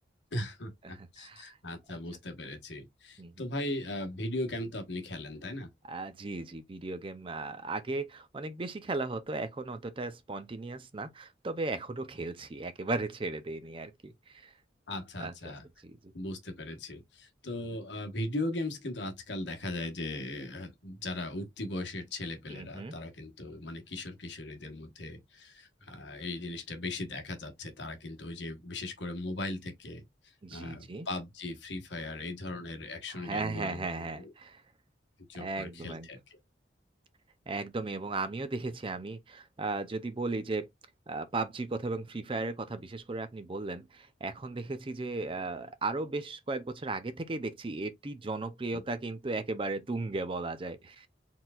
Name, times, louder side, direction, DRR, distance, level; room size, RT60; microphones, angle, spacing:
voice 1, 0.3-5.7 14.9-15.6 16.1-34.3 35.3-36.4 48.7-48.8, left 1 dB, 70° left, 1.1 m, -38 dB
voice 2, 0.8-1.5 3.2-3.3 5.9-14.5 15.2-15.5 15.8-16.0 22.5-23.0 30.4-31.1 33.2-34.6 35.4-36.1 37.5-40.7 41.1-51.1, right 3 dB, 30° right, 0.5 m, -36 dB
4.4 x 3.8 x 2.3 m
head